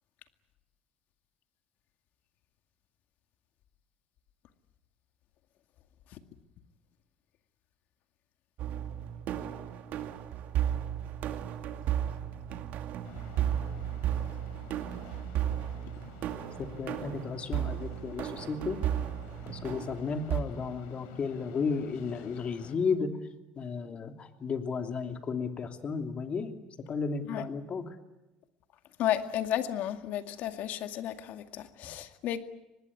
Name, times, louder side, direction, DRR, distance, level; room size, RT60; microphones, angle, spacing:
sound 1, 8.6-20.4, right 10 dB, 65° right, 2.3 m, -34 dB
sound 2, 13.0-22.8, left 7 dB, 85° left, 4.1 m, -52 dB
voice 1, 16.6-18.9 19.5-23.1 23.5-26.5 26.9-27.9 31.8-31.9, left 5 dB, 40° left, 6 dB, 2.9 m, -33 dB
voice 2, 29.0-32.4, left 11 dB, 65° left, 8 dB, 2.1 m, -33 dB
25.0 x 19.5 x 9.8 m, 1.0 s
supercardioid pair, 95°, 3 cm